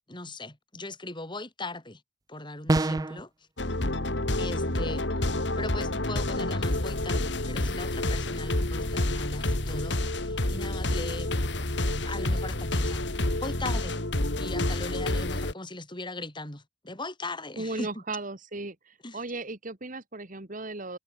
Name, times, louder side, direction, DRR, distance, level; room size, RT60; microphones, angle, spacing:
voice 1, 0.1-2.0 2.3-3.5 4.4-11.3 12.0-14.0 14.3-18.0 19.0-19.2, left 2 dB, 25° left, 6.2 m, -39 dB
sound 1, 2.7-3.2, right 2 dB, 20° right, 0.4 m, -24 dB
sound 2, 3.6-15.5, left 1 dB, 65° left, 2.7 m, -28 dB
voice 2, 17.6-21.0, right 2 dB, 45° right, 2.4 m, -36 dB
head